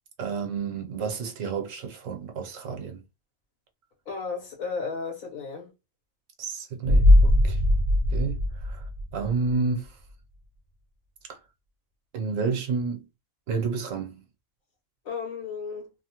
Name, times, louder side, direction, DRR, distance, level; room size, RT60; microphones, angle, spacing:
voice 1, 0.2-3.0 6.4-7.6 8.1-8.8 9.1-10.0 11.3-11.4 12.1-13.0 13.5-14.2, right 4 dB, 75° right, 1.1 m, -30 dB
voice 2, 4.1-5.7 15.0-15.9, left 5 dB, 90° left, 1.5 m, -34 dB
sound 1, 6.8-9.5 9.8-9.9, left 1 dB, 50° right, 0.5 m, -20 dB
3.0 x 2.1 x 2.9 m
omnidirectional pair, 1.4 m